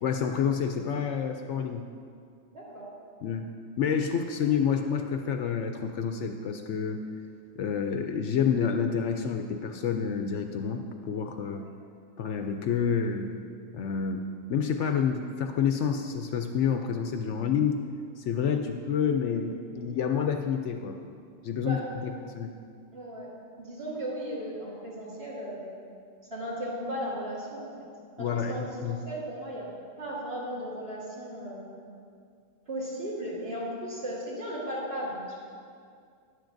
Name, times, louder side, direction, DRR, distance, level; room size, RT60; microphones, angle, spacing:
voice 1, 0.0-1.9 3.2-3.5 3.8-7.0 7.6-11.7 12.2-13.3 13.7-14.2 14.5-17.8 18.2-21.0 21.4-22.5 28.2-28.6 28.8-29.0, left 7 dB, 70° left, 5 dB, 0.8 m, -28 dB
voice 2, 2.5-2.9 11.5-11.7 21.6-21.8 22.9-23.3 23.6-25.6 26.3-27.7 28.2-29.7 30.0-31.6 32.7-35.4, equal, 50° right, -8 dB, 2.7 m, -36 dB
12.0 x 10.0 x 2.6 m, 2.3 s
omnidirectional pair, 1.4 m